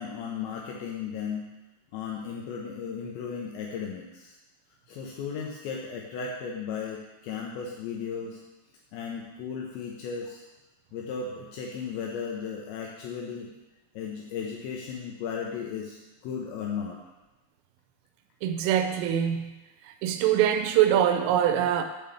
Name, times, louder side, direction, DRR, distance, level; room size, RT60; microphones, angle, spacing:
voice 1, 0.0-1.5 1.9-4.3 4.9-8.4 8.9-10.4 10.9-13.5 14.0-16.0 16.2-17.0, left 6 dB, 80° left, -1 dB, 2.6 m, -35 dB
voice 2, 18.4-19.5 20.0-21.8, right 10 dB, 85° right, 7 dB, 3.1 m, -23 dB
7.6 x 5.4 x 6.9 m, 1.1 s
omnidirectional pair, 6.0 m